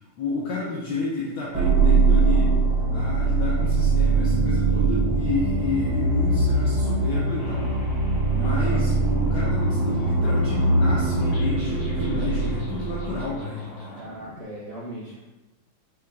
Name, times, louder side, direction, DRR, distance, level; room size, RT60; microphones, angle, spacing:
voice 1, 0.2-2.5 2.9-7.8 8.3-14.0, left 3 dB, 80° left, -5 dB, 1.0 m, -30 dB
sound 1, 1.5-13.4, right 3 dB, 90° right, 1.8 m, -22 dB
sound 2, 2.8-8.7, left 1 dB, 45° right, 0.5 m, -38 dB
sound 3, 7.4-14.4, left 1 dB, 50° left, 0.9 m, -44 dB
voice 2, 8.3-8.8 13.9-15.2, right 1 dB, 70° right, -9 dB, 0.8 m, -38 dB
4.5 x 2.2 x 2.3 m, 1.1 s
omnidirectional pair, 2.4 m